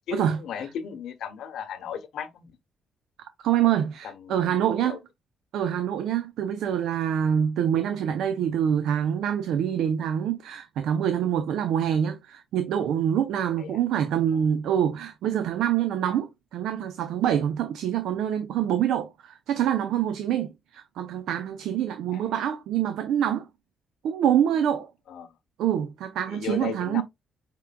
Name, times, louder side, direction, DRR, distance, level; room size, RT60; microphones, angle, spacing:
voice 1, 0.1-2.5 4.0-5.0 13.6-13.8 14.3-14.4 22.1-22.2 25.1-25.3 26.3-27.0, left 8 dB, 75° left, 0.9 m, -36 dB
voice 2, 3.4-5.0 5.5-23.5 24.0-24.9 25.6-27.0, right 9 dB, 80° right, 0.6 m, -25 dB
5.7 x 3.7 x 2.2 m
cardioid pair, 90°, 0 cm